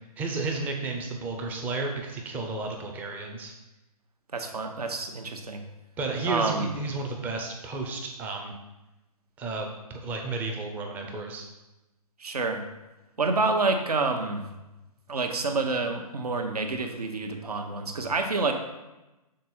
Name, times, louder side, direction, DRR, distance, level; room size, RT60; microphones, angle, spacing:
voice 1, 0.2-3.5 6.0-8.5 9.4-11.4, right 3 dB, 10° right, 2 dB, 0.5 m, -32 dB
voice 2, 4.3-5.6 6.2-6.7 12.2-12.6 13.2-14.5 15.1-18.5, right 3 dB, 70° right, 5 dB, 1.0 m, -28 dB
6.6 x 3.8 x 4.3 m, 1.0 s
figure-of-eight pair, 135°, 20 cm